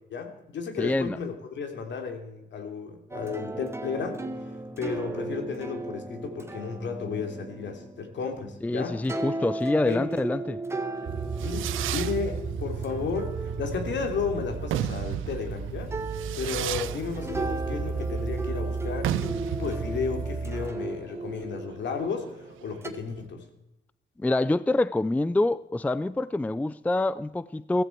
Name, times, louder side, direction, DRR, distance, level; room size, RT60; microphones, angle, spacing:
voice 1, 0.1-9.0 9.8-10.1 11.3-16.0 16.4-23.4, left 5 dB, 65° left, 2.9 m, -33 dB
voice 2, 0.8-1.2 8.6-10.6 24.2-27.8, left 2 dB, 10° left, 0.4 m, -26 dB
sound 1, 3.1-15.4 15.9-22.9, right 2 dB, 15° right, 1.7 m, -37 dB
sound 2, 11.0-20.7, right 5 dB, 45° right, 1.7 m, -34 dB
Fireworks, 11.0-23.2, right 12 dB, 85° right, 0.9 m, -36 dB
15.5 x 15.0 x 4.5 m
cardioid pair, 90°, 20 cm